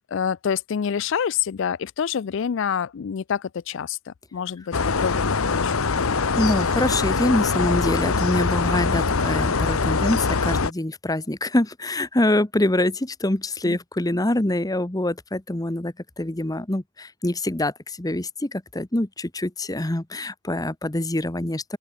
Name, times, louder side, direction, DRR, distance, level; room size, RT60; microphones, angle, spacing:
voice 1, 0.0-5.7 6.1-6.2 13.6-13.8, left 7 dB, 60° left, 0.4 m, -27 dB
sound 1, 4.7-10.7, left 4 dB, 90° left, 1.0 m, -23 dB
voice 2, 6.3-21.8, left 1 dB, 20° left, 1.0 m, -25 dB
open air
head